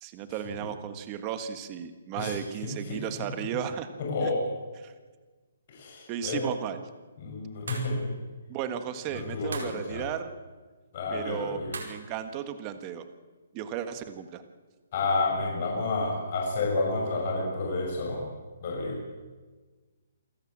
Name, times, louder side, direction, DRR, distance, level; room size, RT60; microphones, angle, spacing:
voice 1, 0.0-3.9 4.2-4.3 4.8-4.9 6.1-6.8 8.5-10.3 11.1-13.0 13.5-14.4, right 9 dB, 20° right, 9 dB, 1.5 m, -35 dB
voice 2, 2.6-3.2 4.1-4.4 5.7-6.4 7.2-8.1 9.1-10.0 10.9-11.8 14.9-18.2 18.6-19.0, left 3 dB, 40° left, -2 dB, 6.3 m, -30 dB
sound 1, 7.7-8.0 9.5-9.8 11.7-12.1, right 4 dB, 80° right, 5.1 m, -38 dB
28.0 x 13.5 x 8.9 m, 1.4 s
hypercardioid pair, 165°, 0 cm